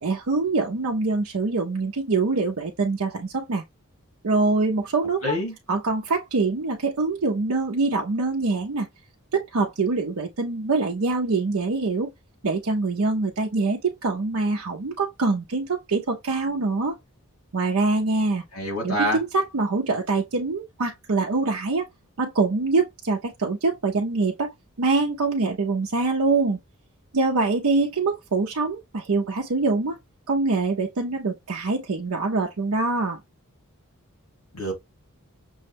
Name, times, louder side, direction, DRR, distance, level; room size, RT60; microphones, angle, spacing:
voice 1, 0.0-3.6 4.2-5.4 5.7-8.9 9.3-12.1 12.4-17.0 17.5-18.4 18.8-21.9 22.2-24.5 24.8-26.6 27.1-30.0 30.3-33.2, right 3 dB, 75° right, 0.6 m, -24 dB
voice 2, 5.2-5.5 18.5-19.2 34.5-34.7, equal, 80° left, 3.1 m, -26 dB
6.1 x 2.2 x 3.3 m
head